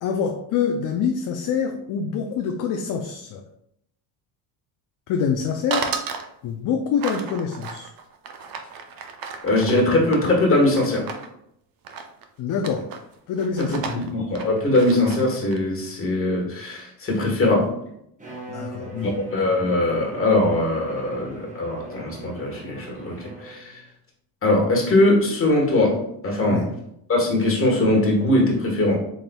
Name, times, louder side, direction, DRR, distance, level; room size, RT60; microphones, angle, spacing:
voice 1, 0.0-3.5 5.1-6.0 6.4-7.9 12.4-12.9 13.3-14.1 18.5-19.2 26.5-26.7, left 6 dB, 45° left, 4 dB, 0.4 m, -26 dB
sound 1, 5.7-6.3 7.0-11.3 11.8-12.2 12.5-13.0 13.4-15.6, right 5 dB, 45° right, 0.6 m, -33 dB
voice 2, 9.4-11.1 13.7-17.7 19.1-23.8 24.4-26.6 27.1-29.0, left 2 dB, 30° left, -1 dB, 1.4 m, -21 dB
Bowed string instrument, 18.2-23.8, right 2 dB, 15° right, 0.9 m, -40 dB
4.2 x 3.6 x 2.2 m, 0.75 s
supercardioid pair, 100°, 47 cm